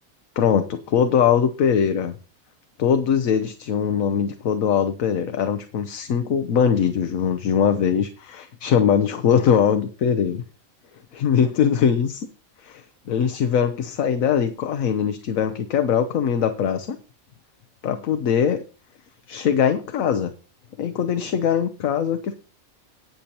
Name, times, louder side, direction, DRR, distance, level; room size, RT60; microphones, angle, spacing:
voice 1, 0.4-2.1 2.8-10.4 11.1-12.2 12.6-12.8 13.1-17.0 17.8-18.6 19.3-20.3 20.8-22.3, left 7 dB, 75° left, 8 dB, 1.2 m, -21 dB
18.0 x 6.7 x 2.9 m, 0.37 s
omnidirectional pair, 1.5 m